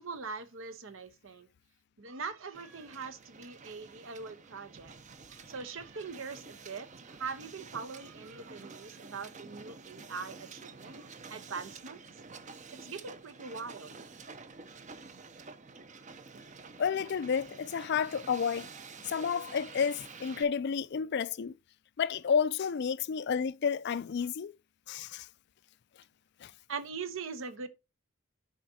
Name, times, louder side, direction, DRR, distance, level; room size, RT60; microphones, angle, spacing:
voice 1, 0.0-1.5 2.0-4.9 5.5-12.0 12.8-13.9 26.7-27.7, right 5 dB, 70° right, 0.8 m, -42 dB
Hiss, 2.5-20.4, right 4 dB, 35° right, 0.6 m, -49 dB
voice 2, 16.8-18.7 19.1-21.5 22.0-24.5 24.9-25.3 26.4-26.5, left 6 dB, 55° left, 0.4 m, -31 dB
13.0 x 5.0 x 2.7 m
head